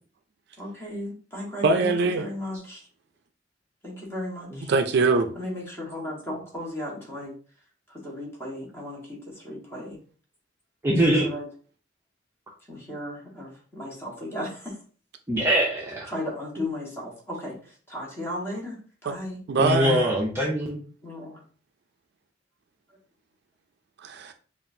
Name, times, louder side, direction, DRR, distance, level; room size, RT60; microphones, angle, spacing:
voice 1, 0.6-2.9 3.8-4.7 5.3-7.3 7.9-10.0 11.1-11.5 12.7-14.8 16.1-19.4 21.0-21.4, left 1 dB, 15° left, 1.4 m, -35 dB
voice 2, 1.6-2.3 4.7-5.3 19.1-19.2 19.5-20.0 24.0-24.3, right 3 dB, 60° right, 0.4 m, -22 dB
voice 3, 10.8-11.3 15.3-16.1 19.6-20.8, equal, 15° right, 0.6 m, -23 dB
5.4 x 2.4 x 2.6 m
head